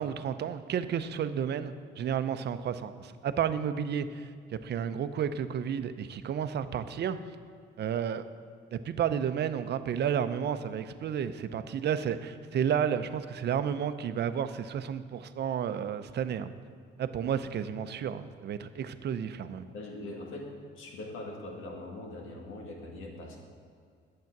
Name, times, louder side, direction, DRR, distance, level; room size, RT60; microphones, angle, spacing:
voice 1, 0.0-7.2 7.8-8.2 8.7-16.5 17.0-19.7, right 8 dB, 60° right, 12 dB, 0.6 m, -32 dB
voice 2, 19.7-23.4, left 2 dB, 85° left, 0 dB, 1.9 m, -42 dB
9.4 x 7.6 x 5.9 m, 2.2 s
cardioid pair, 90°, 20 cm